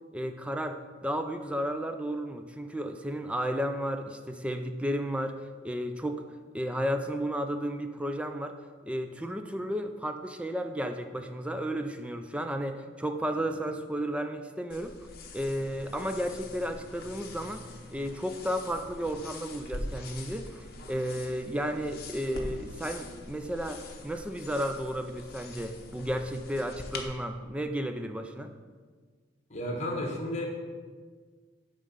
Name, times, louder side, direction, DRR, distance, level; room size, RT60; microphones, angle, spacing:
voice 1, 0.1-5.4 5.6-6.2 6.5-8.5 8.8-15.0 15.3-28.5, equal, 5° right, 7 dB, 0.3 m, -33 dB
sound 1, 14.7-27.0, left 2 dB, 50° left, 0.8 m, -44 dB
sound 2, 15.5-24.1, equal, 55° right, 1.8 m, -53 dB
voice 2, 29.5-30.5, left 1 dB, 35° left, 1 dB, 1.2 m, -32 dB
8.7 x 3.7 x 5.4 m, 1.5 s
head